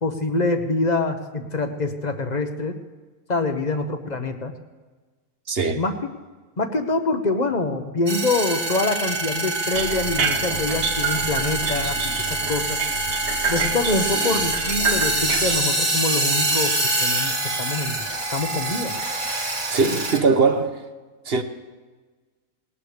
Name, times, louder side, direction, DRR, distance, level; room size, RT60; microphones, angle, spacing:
voice 1, 0.0-2.8 3.3-4.5 5.8-6.1 6.6-12.8 13.5-18.1 18.3-18.9, left 3 dB, 35° left, 1.0 m, -25 dB
voice 2, 5.5-5.8 19.7-20.8 21.2-21.4, right 4 dB, 45° right, 1.1 m, -20 dB
sound 1, 8.1-20.2, right 2 dB, 15° right, 1.3 m, -25 dB
sound 2, 9.7-15.6, right 5 dB, 80° right, 1.7 m, -28 dB
19.5 x 18.0 x 3.4 m
omnidirectional pair, 1.6 m